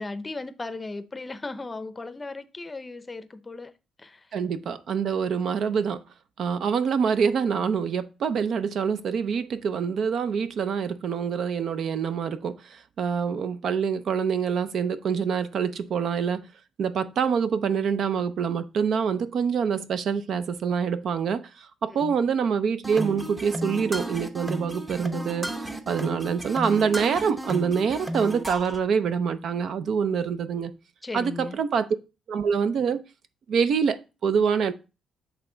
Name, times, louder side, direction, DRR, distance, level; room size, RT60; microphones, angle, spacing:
voice 1, 0.0-3.7 4.0-4.3 21.9-22.1 31.0-31.6, left 3 dB, 25° left, 0.6 m, -36 dB
voice 2, 4.3-6.0 6.4-16.5 16.8-25.5 25.9-30.7 31.1-31.9 32.3-33.0 33.5-34.7, right 6 dB, 65° right, 0.5 m, -26 dB
sound 1, 22.8-28.8, right 1 dB, 15° right, 0.8 m, -33 dB
8.2 x 3.4 x 3.8 m
cardioid pair, 90°, 0 cm